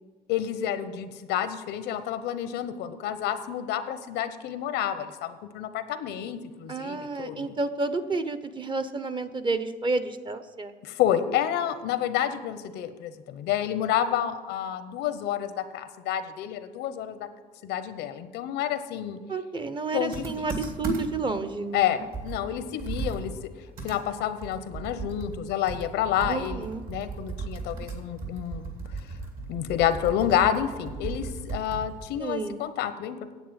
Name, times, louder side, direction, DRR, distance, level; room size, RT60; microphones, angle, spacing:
voice 1, 0.3-7.5 10.8-17.3 17.6-19.2 19.9-20.2 21.7-23.3 23.8-28.7 29.5-33.3, left 10 dB, 90° left, 11 dB, 0.9 m, -29 dB
voice 2, 6.7-10.7 19.3-22.1 26.3-26.8 32.2-32.6, right 3 dB, 30° right, 11 dB, 0.8 m, -30 dB
Computer keyboard, 20.1-21.3 21.7-21.8 22.1-25.4 25.7-32.2, right 4 dB, 55° right, 2.7 m, -36 dB
9.2 x 8.2 x 7.5 m, 1.4 s
cardioid pair, 110°, 17 cm